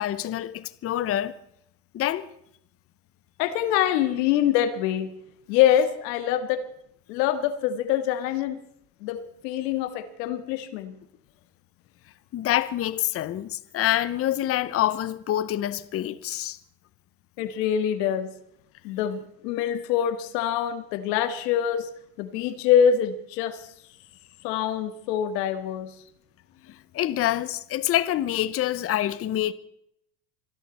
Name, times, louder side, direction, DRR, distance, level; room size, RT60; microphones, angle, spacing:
voice 1, 0.0-1.4 1.9-2.3 12.3-16.6 26.7-29.5, left 13 dB, 30° left, 0.7 m, -26 dB
voice 2, 3.4-5.1 5.5-6.6 7.1-8.6 9.0-11.0 17.4-18.3 18.8-23.7 24.4-25.9, left 9 dB, 75° left, 2.0 m, -25 dB
26.0 x 11.0 x 4.2 m
supercardioid pair, 130°, 49 cm